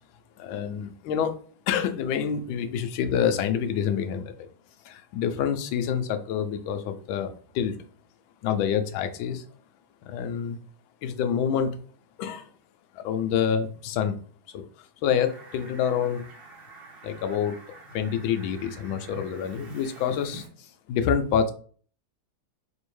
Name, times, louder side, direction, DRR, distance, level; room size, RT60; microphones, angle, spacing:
voice 1, 0.4-1.3 1.7-4.5 4.8-7.8 8.4-9.4 10.0-10.6 11.0-11.8 12.2-12.5 12.9-14.2 14.5-16.2 17.0-17.6 17.9-21.5, left 8 dB, 85° left, 9 dB, 1.3 m, -27 dB
Fowl, 15.2-20.5, right 1 dB, 40° right, 0.9 m, -46 dB
4.3 x 2.7 x 3.1 m, 0.43 s
omnidirectional pair, 2.1 m